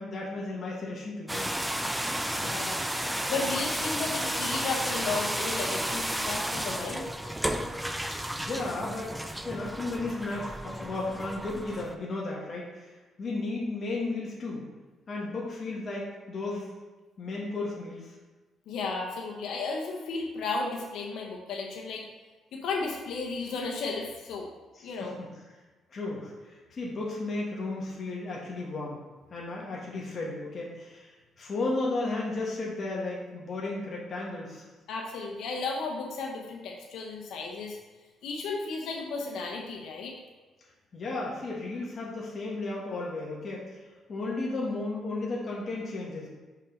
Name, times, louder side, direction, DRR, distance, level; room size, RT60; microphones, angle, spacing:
voice 1, 0.0-1.4 7.8-9.1 9.4-14.7 15.1-16.7 17.2-18.1 24.7-25.3 25.9-29.0 29.3-34.7 40.9-46.3, left 2 dB, 45° left, -4 dB, 1.5 m, -34 dB
sound 1, 1.3-12.0, right 1 dB, 5° right, 0.5 m, -32 dB
voice 2, 2.4-2.8 3.3-7.0 18.7-22.0 22.5-24.5 24.8-25.2 34.9-37.8 38.2-40.2, left 4 dB, 80° left, -1 dB, 0.9 m, -34 dB
5.4 x 5.3 x 3.8 m, 1.2 s
cardioid pair, 90°, 0 cm